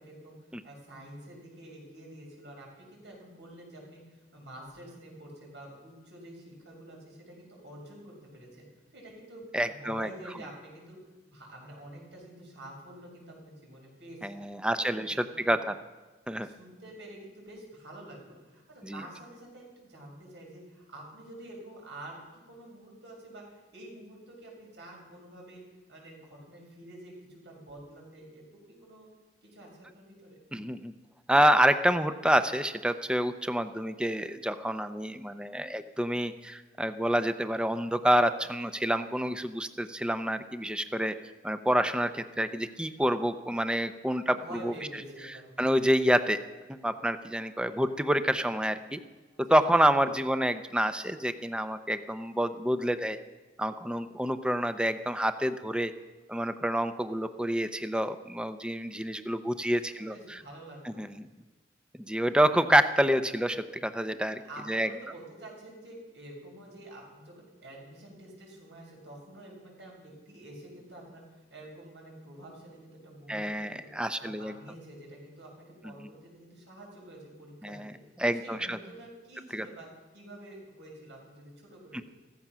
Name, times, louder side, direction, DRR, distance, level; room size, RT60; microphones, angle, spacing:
voice 1, 0.0-8.7 8.9-11.0 11.2-14.4 14.7-15.5 16.4-22.2 22.5-25.6 25.9-29.1 29.4-29.7 29.9-30.4 44.2-45.7 49.5-49.6 59.9-61.0 64.3-78.0 78.2-79.9 80.1-82.0, right 1 dB, 90° right, -2 dB, 6.3 m, -48 dB
voice 2, 9.5-10.1 14.2-15.8 16.3-16.5 18.8-19.0 30.5-30.9 31.3-41.2 41.4-45.0 45.6-46.4 46.8-49.0 49.5-53.2 53.6-55.9 56.3-60.4 60.8-61.1 62.1-64.4 64.7-64.9 73.3-74.5 75.8-76.1 77.6-77.9 78.2-78.8 79.5-79.7 81.9-82.0, equal, 5° right, 10 dB, 0.6 m, -28 dB
15.5 x 14.5 x 6.1 m, 1.2 s
head